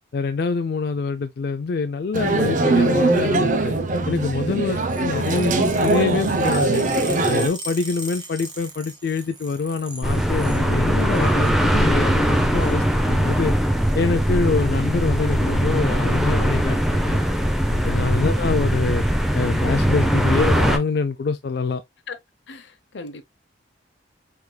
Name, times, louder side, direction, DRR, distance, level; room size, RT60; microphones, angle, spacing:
voice 1, 0.1-3.7 4.1-6.9 7.3-13.5 13.9-17.2 17.7-19.0 19.3-21.8, left 4 dB, 55° left, 0.4 m, -25 dB
sound 1, 2.1-7.5, right 2 dB, 45° right, 0.6 m, -21 dB
sound 2, 4.7-10.6 11.0-11.5 12.3-12.8 13.9-14.1 15.0-15.3 15.6-15.7 16.0-16.1 16.4-16.9 17.5-17.6 18.5-18.6, right 1 dB, 25° right, 0.9 m, -39 dB
sound 3, 10.0-20.8, equal, ahead, 0.6 m, -20 dB
voice 2, 17.9-18.3 22.1-22.2 22.5-23.2, left 3 dB, 85° left, 0.8 m, -38 dB
4.8 x 3.5 x 2.2 m
head